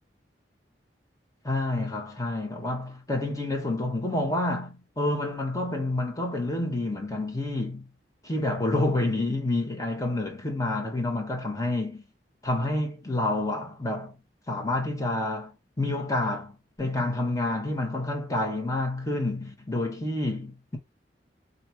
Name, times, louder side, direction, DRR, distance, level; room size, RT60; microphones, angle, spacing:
voice 1, 1.4-7.9 8.2-12.0 12.4-14.1 14.5-16.5 16.8-20.8, left 2 dB, 20° left, 1.2 m, -28 dB
3.1 x 2.6 x 4.3 m
head